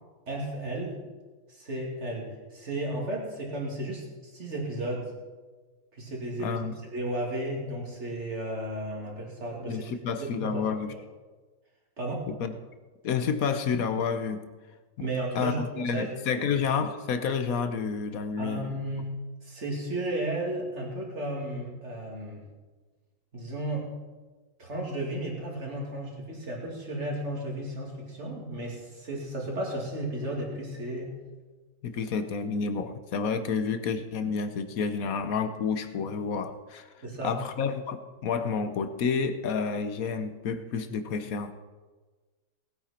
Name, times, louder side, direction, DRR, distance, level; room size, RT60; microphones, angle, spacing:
voice 1, 0.3-1.0 1.5-5.1 5.9-6.6 6.9-9.9 10.2-10.6 10.9-11.0 12.0-12.3 15.0-16.5 18.4-19.1 19.4-22.4 23.3-23.9 24.6-31.1 37.0-37.4, right 1 dB, 35° right, -2 dB, 2.9 m, -34 dB
voice 2, 6.4-6.7 9.7-10.9 12.3-12.5 13.0-14.4 15.3-18.7 31.8-36.9 37.2-41.5, left 5 dB, 60° left, 9 dB, 1.0 m, -30 dB
19.0 x 9.2 x 4.4 m, 1.3 s
omnidirectional pair, 2.2 m